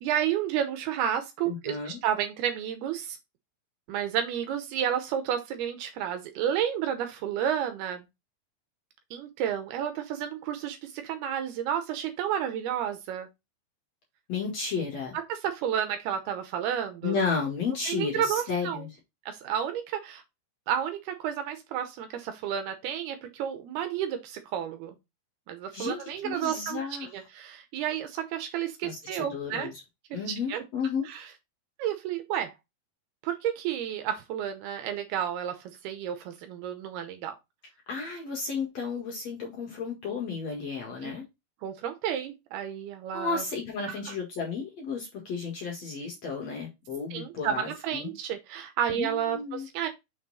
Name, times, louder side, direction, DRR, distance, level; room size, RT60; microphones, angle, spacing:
voice 1, 0.0-3.2 3.9-8.1 9.1-13.3 15.1-17.2 17.9-18.9 19.3-20.2 20.7-25.0 25.5-26.8 27.1-29.7 30.1-30.6 31.1-31.2 31.8-32.5 33.2-37.4 41.0-41.1 41.6-43.4 47.1-49.9, right 9 dB, 75° right, 2.6 m, -31 dB
voice 2, 1.5-2.0 14.3-15.2 17.0-18.9 25.7-27.1 28.8-29.7 30.1-31.1 37.9-41.2 43.1-48.1 48.9-49.7, left 5 dB, 50° left, 2.4 m, -33 dB
6.3 x 4.4 x 4.1 m
omnidirectional pair, 4.9 m